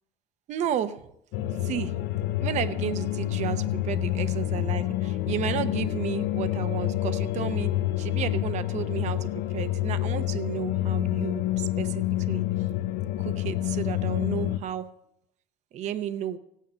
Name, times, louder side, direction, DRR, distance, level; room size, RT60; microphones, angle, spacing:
voice 1, 0.5-1.0 1.6-1.9 2.4-7.7 8.0-12.4 13.2-14.9 15.7-16.4, right 9 dB, 45° right, 11 dB, 0.7 m, -32 dB
sound 1, 1.3-14.6, left 14 dB, 70° left, 0.8 m, -28 dB
16.5 x 9.2 x 5.6 m, 0.76 s
cardioid pair, 180°, 17 cm